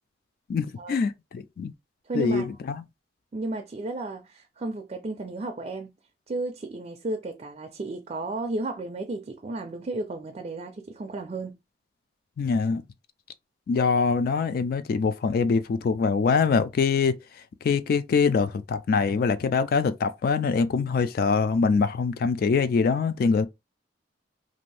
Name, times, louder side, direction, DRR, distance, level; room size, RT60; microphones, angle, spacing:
voice 1, 0.5-1.7 2.1-2.8 12.4-12.8 13.7-17.2 17.6-23.5, left 5 dB, 55° left, 0.3 m, -24 dB
voice 2, 2.1-2.5 3.3-5.9 6.3-11.6 14.0-14.1, right 2 dB, 35° right, 0.4 m, -33 dB
2.6 x 2.5 x 3.2 m
head